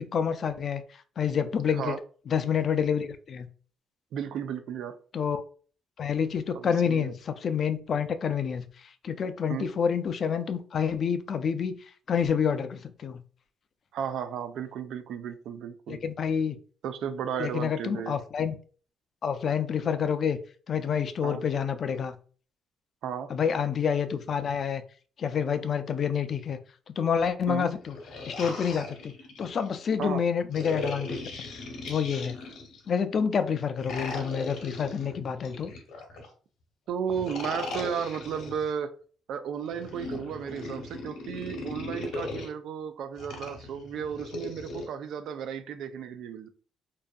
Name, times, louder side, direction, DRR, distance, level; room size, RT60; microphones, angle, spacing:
voice 1, 0.0-2.0 2.3-3.5 5.1-5.4 6.0-13.2 15.9-16.6 17.4-18.6 19.2-20.4 20.7-22.2 23.3-24.8 25.2-26.6 26.9-28.0 28.3-31.2 31.9-32.4 32.9-35.7, left 7 dB, 55° left, 0.3 m, -28 dB
voice 2, 4.1-5.0 6.5-7.1 9.5-9.7 13.9-16.0 16.8-18.2 21.2-21.4 23.0-23.3 27.5-27.7 30.0-30.2 36.9-38.9 39.3-46.5, right 8 dB, 75° right, 0.3 m, -34 dB
sound 1, 27.8-29.7 30.5-32.9 33.8-36.3 37.1-38.7 39.7-42.5 43.2-44.9, left 2 dB, 75° left, 0.8 m, -38 dB
2.5 x 2.5 x 2.2 m
cardioid pair, 90°, 0 cm